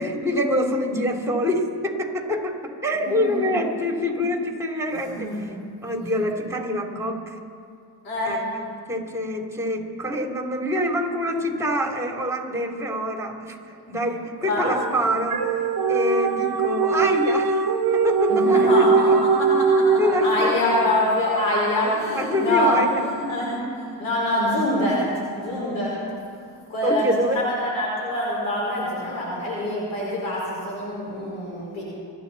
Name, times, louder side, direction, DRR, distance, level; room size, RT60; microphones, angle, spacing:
voice 1, 0.0-5.5 5.8-7.4 8.2-13.6 13.9-17.6 17.9-19.2 20.0-20.6 21.8-23.1 26.8-27.4, equal, 5° right, 1 dB, 3.4 m, -26 dB
voice 2, 3.1-3.6 4.9-5.5 8.0-8.4 14.4-14.7 18.3-22.7 23.0-25.0 25.4-25.9 26.7-31.8, left 1 dB, 90° left, -5 dB, 5.2 m, -25 dB
sound 1, 14.6-21.0, right 4 dB, 50° right, 1.3 m, -21 dB
28.5 x 10.5 x 4.2 m, 2.4 s
supercardioid pair, 55°, 48 cm